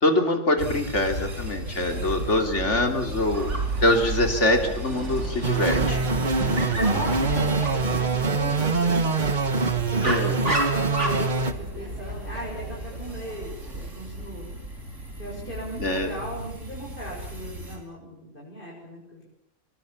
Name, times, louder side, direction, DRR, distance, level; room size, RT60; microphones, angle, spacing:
voice 1, 0.0-3.5 3.8-5.8 10.0-10.4 15.8-16.1, left 1 dB, 65° left, 4 dB, 3.8 m, -23 dB
sound 1, 0.6-17.8, right 2 dB, 80° right, 5.3 m, -34 dB
voice 2, 1.8-2.2 5.5-14.5 15.2-19.3, equal, 45° left, -4 dB, 7.5 m, -37 dB
Dog, 3.3-13.9, right 1 dB, 65° right, 5.0 m, -35 dB
sound 2, 5.4-11.5, right 4 dB, 40° right, 1.6 m, -24 dB
25.0 x 23.0 x 7.4 m, 0.75 s
omnidirectional pair, 1.3 m